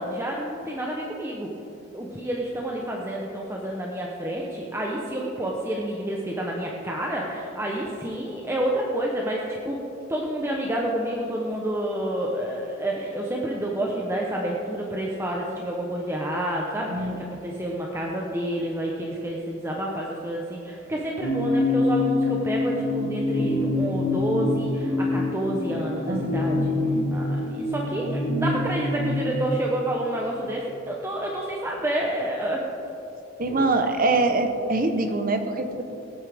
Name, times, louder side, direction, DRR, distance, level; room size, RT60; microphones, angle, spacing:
voice 1, 0.0-1.6 1.9-9.8 10.1-26.7 27.1-27.3 27.7-32.6 33.5-33.7, right 1 dB, 15° right, -2 dB, 0.8 m, -29 dB
sound 1, 21.2-29.4, left 2 dB, 80° left, 2.1 m, -25 dB
voice 2, 26.1-26.4 33.4-35.8, right 2 dB, 45° right, 7 dB, 0.9 m, -24 dB
17.0 x 9.4 x 3.5 m, 3.0 s
head